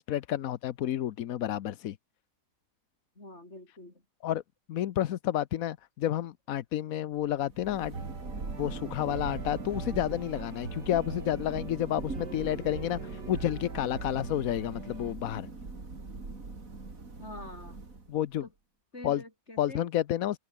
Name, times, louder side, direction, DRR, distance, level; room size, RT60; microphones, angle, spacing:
voice 1, 0.0-2.0 4.2-4.4 4.7-8.0 8.6-15.5 18.1-18.5 19.0-19.2 19.6-20.4, left 12 dB, 65° left, 1.0 m, -30 dB
voice 2, 3.2-4.0 17.2-17.8 18.4-18.5 18.9-19.9, left 1 dB, 40° left, 7.2 m, -45 dB
Thunder, 7.3-18.3, right 3 dB, 50° right, 3.8 m, -41 dB
sound 1, 7.9-15.1, right 4 dB, 80° right, 3.7 m, -42 dB
omnidirectional pair, 1.9 m